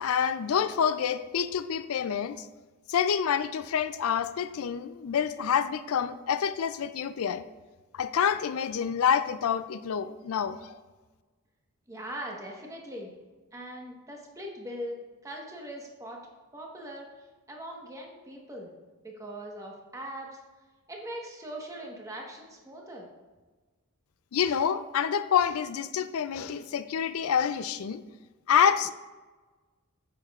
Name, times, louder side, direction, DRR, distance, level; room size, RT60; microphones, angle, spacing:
voice 1, 0.0-2.5 2.9-7.4 7.9-10.8 24.3-28.0 28.5-28.9, left 7 dB, 70° left, 11 dB, 0.4 m, -27 dB
voice 2, 11.9-13.1 13.5-15.0 15.2-16.2 16.5-18.7 19.0-20.4 20.9-23.1, right 1 dB, 15° right, -1 dB, 1.2 m, -41 dB
8.9 x 7.7 x 2.4 m, 1.3 s
head